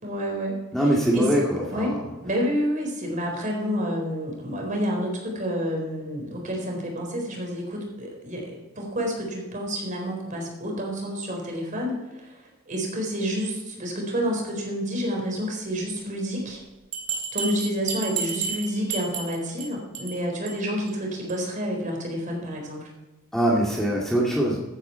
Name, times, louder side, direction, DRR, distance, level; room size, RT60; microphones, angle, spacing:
voice 1, 0.0-0.6 1.1-1.3 1.6-1.9 2.2-16.6 17.3-22.9, equal, 40° right, 0 dB, 4.1 m, -29 dB
voice 2, 0.7-2.0 23.3-24.6, right 1 dB, ahead, -4 dB, 2.1 m, -22 dB
Bell, 16.9-19.7 19.9-20.2 20.5-20.6 20.9-21.0 21.3-21.4, right 6 dB, 65° right, 3.8 m, -31 dB
15.0 x 9.8 x 4.5 m, 1.1 s
head